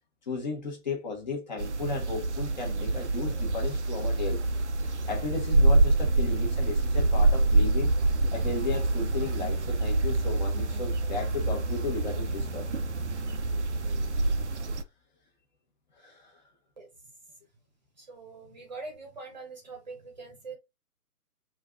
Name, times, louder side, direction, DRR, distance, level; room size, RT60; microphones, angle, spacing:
voice 1, 0.3-4.4 5.1-7.9 8.3-12.7 16.0-16.4, left 4 dB, 30° left, 1.3 m, -35 dB
sound 1, 1.6-14.8, right 2 dB, 50° right, 0.6 m, -26 dB
voice 2, 18.0-20.5, right 3 dB, 30° right, 1.0 m, -43 dB
5.4 x 2.6 x 3.4 m
hypercardioid pair, 160°, 47 cm